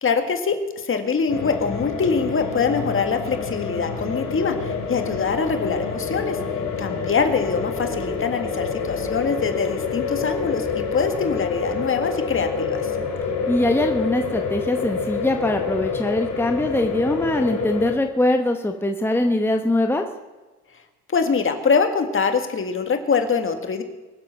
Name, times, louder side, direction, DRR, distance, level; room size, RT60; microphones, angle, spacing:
voice 1, 0.0-6.4 6.8-12.9 21.1-23.8, left 5 dB, 45° left, 7 dB, 2.0 m, -23 dB
sound 1, 1.3-17.9, left 5 dB, 65° left, 3.7 m, -27 dB
voice 2, 13.5-20.0, left 1 dB, 10° left, 5 dB, 1.1 m, -22 dB
23.5 x 7.9 x 5.9 m, 1.2 s
cardioid pair, 90°, 30 cm